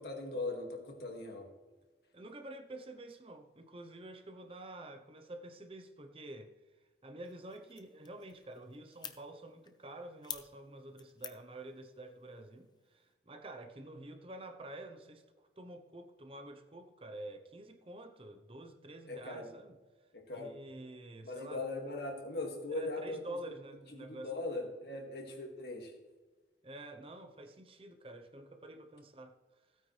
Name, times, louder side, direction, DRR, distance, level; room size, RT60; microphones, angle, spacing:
voice 1, 0.0-1.5 19.1-19.5 20.1-20.5 21.2-23.4 24.0-25.9, left 2 dB, 65° left, 1 dB, 2.2 m, -40 dB
voice 2, 2.1-6.5 7.0-19.8 20.3-21.6 22.7-24.3 26.6-29.4, right 1 dB, 30° right, 6 dB, 0.8 m, -48 dB
sound 1, 7.2-13.1, left 8 dB, 25° left, 0.6 m, -51 dB
16.0 x 9.1 x 3.3 m, 1.3 s
head